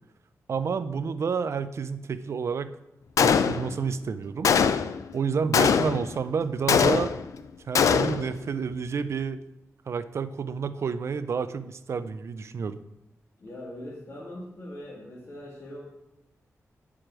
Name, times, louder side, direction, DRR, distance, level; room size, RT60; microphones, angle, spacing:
voice 1, 0.5-2.7 3.2-4.5 5.1-7.1 7.7-9.4 9.9-12.8, right 6 dB, 55° right, 12 dB, 0.5 m, -29 dB
Gunshot gunfire, 3.2-3.9 4.4-5.0 5.5-6.1 6.7-7.3 7.7-8.3, left 6 dB, 85° left, 0.5 m, -22 dB
voice 2, 13.4-15.8, left 1 dB, 50° left, -5 dB, 2.0 m, -41 dB
9.0 x 5.0 x 6.0 m, 0.93 s
wide cardioid pair, 125°, 5 cm